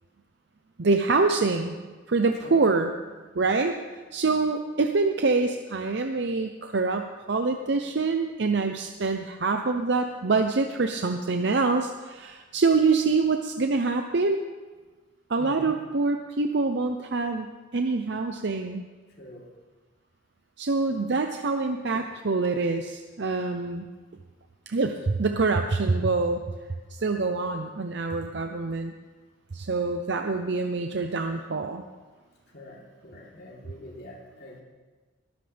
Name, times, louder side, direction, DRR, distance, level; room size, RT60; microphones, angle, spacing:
voice 1, 0.8-2.9 3.4-3.7 4.1-14.4 15.3-18.8 20.6-23.9 24.7-26.4 26.9-28.9 29.5-31.9, right 3 dB, 65° right, 5 dB, 0.7 m, -25 dB
voice 2, 9.0-9.6 15.4-15.8 19.2-19.5 32.5-34.6, left 1 dB, 60° left, -3 dB, 3.4 m, -45 dB
21.0 x 13.5 x 3.4 m, 1.3 s
head